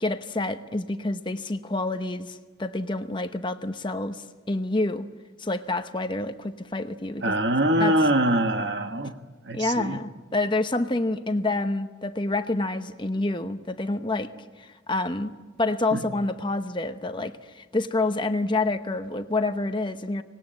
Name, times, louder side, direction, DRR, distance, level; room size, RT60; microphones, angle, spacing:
voice 1, 0.0-5.1 5.4-7.4 7.8-8.0 9.5-14.3 14.6-15.3 15.6-20.2, left 2 dB, 25° left, 0.9 m, -28 dB
voice 2, 7.2-9.1 9.4-10.0 15.9-16.0, right 1 dB, 60° right, 1.3 m, -23 dB
25.5 x 19.5 x 9.0 m
head